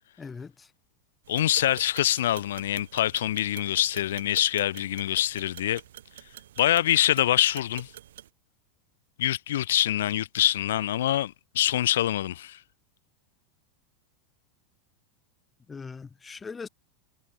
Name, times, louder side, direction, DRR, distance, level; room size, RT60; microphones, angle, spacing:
voice 1, 0.2-0.7 15.7-16.7, left 5 dB, 15° left, 7.2 m, -40 dB
sound 1, 1.2-8.3, right 12 dB, 90° right, 4.3 m, -47 dB
voice 2, 1.3-5.8 6.6-7.9 9.2-12.6, left 12 dB, 85° left, 2.3 m, -25 dB
supercardioid pair, 130°, 0 cm